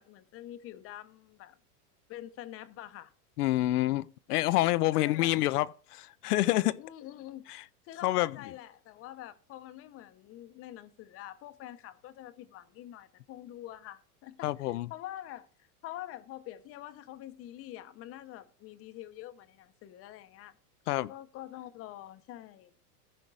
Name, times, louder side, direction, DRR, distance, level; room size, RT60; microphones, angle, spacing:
voice 1, 0.0-1.6 2.1-3.1 4.9-5.3 6.8-7.4 7.8-15.5 15.8-20.5 21.1-22.7, left 13 dB, 30° left, 0.7 m, -46 dB
voice 2, 3.4-6.8 8.0-8.4 14.4-14.9 20.9-21.1, left 16 dB, 75° left, 0.6 m, -27 dB
14.0 x 5.2 x 4.7 m
supercardioid pair, 135°, 46 cm